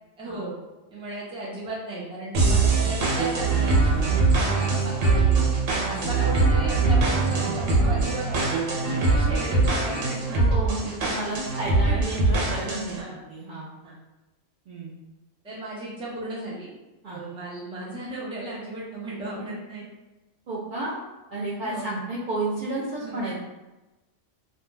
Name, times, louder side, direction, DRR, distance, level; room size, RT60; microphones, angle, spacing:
voice 1, 0.2-0.5 0.9-5.4 5.9-11.4 11.7-12.4 12.9-13.2 13.8-13.9 15.4-16.7 17.1-19.9 21.6-21.9 23.0-23.3, right 2 dB, 5° right, -7 dB, 0.5 m, -36 dB
sound 1, 2.3-13.0, right 3 dB, 85° right, 1.0 m, -22 dB
voice 2, 5.7-6.1 10.4-13.0 13.3-13.7 14.7-14.9 17.0-17.2 20.5-21.0 21.3-23.4, right 2 dB, 60° right, -8 dB, 0.6 m, -32 dB
2.4 x 2.2 x 3.1 m, 1.1 s
omnidirectional pair, 1.3 m